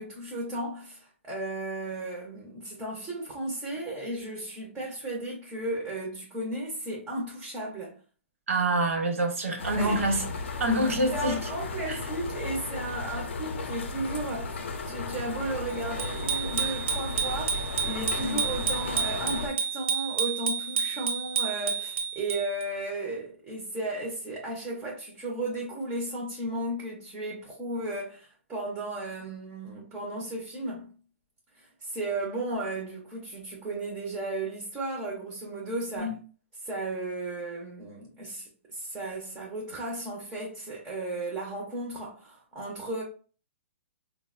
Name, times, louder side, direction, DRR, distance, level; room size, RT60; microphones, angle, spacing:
voice 1, 0.0-8.0 9.8-10.0 11.1-14.6 14.8-30.9 31.8-36.1 36.6-43.0, right 2 dB, 10° right, 0.4 m, -35 dB
voice 2, 8.5-10.2 10.6-11.4 11.9-12.0 18.2-18.4 36.0-36.1, right 1 dB, 85° right, 0.9 m, -26 dB
sound 1, 9.6-19.5, left 3 dB, 60° left, 0.5 m, -35 dB
Bicycle bell, 16.0-22.6, right 6 dB, 70° right, 0.7 m, -30 dB
3.9 x 2.0 x 2.3 m
hypercardioid pair, 170°, 7 cm